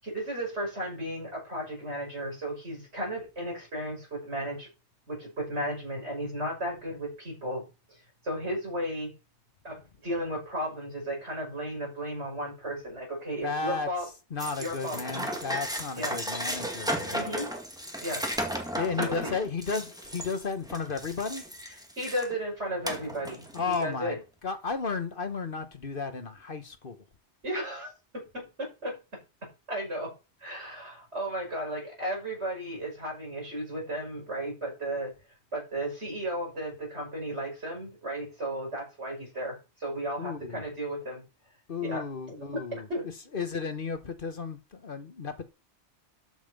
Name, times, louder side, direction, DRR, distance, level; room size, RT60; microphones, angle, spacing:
voice 1, 0.0-4.7 5.1-7.7 8.2-9.1 9.6-14.1 14.6-15.0 15.9-16.2 17.1-17.5 18.0-18.2 18.8-19.3 22.0-24.2 27.4-30.1 30.4-35.1 35.5-41.2 41.8-42.0 42.3-43.1, right 1 dB, 75° right, 6.7 m, -34 dB
voice 2, 13.4-13.9 14.3-17.2 18.8-21.5 23.5-27.0 40.2-40.6 41.7-42.9 43.3-45.5, left 4 dB, 50° left, 1.3 m, -33 dB
sound 1, 14.4-22.3 22.8-23.8, equal, 5° right, 2.0 m, -35 dB
13.0 x 5.5 x 5.3 m
omnidirectional pair, 1.2 m